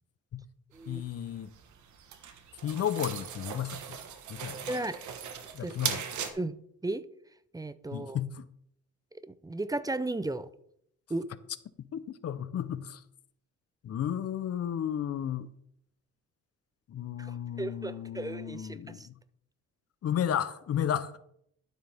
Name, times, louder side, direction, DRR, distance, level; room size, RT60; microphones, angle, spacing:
sound 1, 0.7-6.3, right 8 dB, 70° right, 1.3 m, -39 dB
voice 1, 0.9-1.5 2.6-4.0 4.3-4.7 5.5-6.0 7.9-8.4 11.9-13.0 13.8-15.5 16.9-19.1 20.0-21.2, left 9 dB, 55° left, 0.7 m, -33 dB
voice 2, 4.7-5.0 5.6-5.7 6.3-6.6 6.8-7.1 7.5-8.2 9.3-10.5 11.1-11.2 17.2-19.1, right 2 dB, 10° right, 0.6 m, -35 dB
12.5 x 7.7 x 3.5 m
cardioid pair, 90°, 30 cm